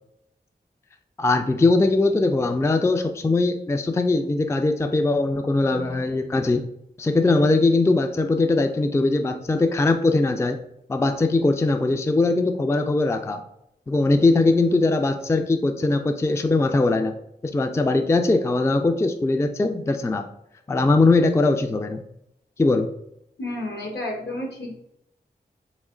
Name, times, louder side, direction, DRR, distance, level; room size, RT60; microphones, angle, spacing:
voice 1, 1.2-6.6 7.0-10.6 10.9-13.4 13.9-17.1 17.4-20.3 20.7-22.0 22.6-22.9, left 2 dB, 15° left, 6 dB, 0.3 m, -21 dB
voice 2, 23.4-24.8, left 1 dB, 70° left, 0 dB, 1.2 m, -31 dB
3.7 x 3.1 x 3.6 m, 0.79 s
cardioid pair, 50°, 18 cm